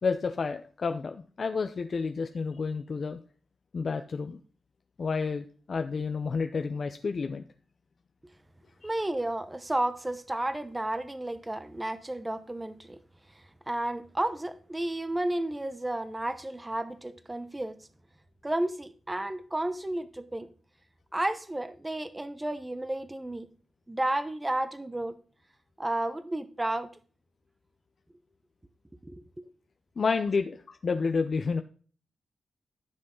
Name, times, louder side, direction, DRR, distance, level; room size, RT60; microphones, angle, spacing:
voice 1, 0.0-3.2 3.7-4.4 5.0-7.4 8.8-8.9 30.0-31.6, left 4 dB, 45° left, 0.7 m, -30 dB
voice 2, 8.8-13.0 13.3-17.8 18.4-20.5 21.1-23.5 23.9-25.2 25.8-26.9 29.0-29.4, right 1 dB, 15° right, 0.9 m, -32 dB
14.5 x 6.4 x 3.8 m
cardioid pair, 100°, 0 cm